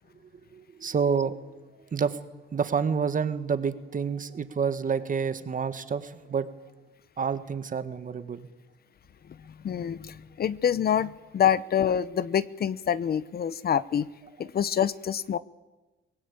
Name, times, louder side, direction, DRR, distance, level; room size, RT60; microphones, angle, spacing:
voice 1, 0.5-1.4 1.9-2.2 2.5-6.5 7.2-8.5, right 6 dB, 40° right, 1.7 m, -28 dB
voice 2, 9.6-14.1 14.4-15.4, left 9 dB, 50° left, 0.9 m, -26 dB
24.0 x 19.0 x 8.8 m
cardioid pair, 90°, 20 cm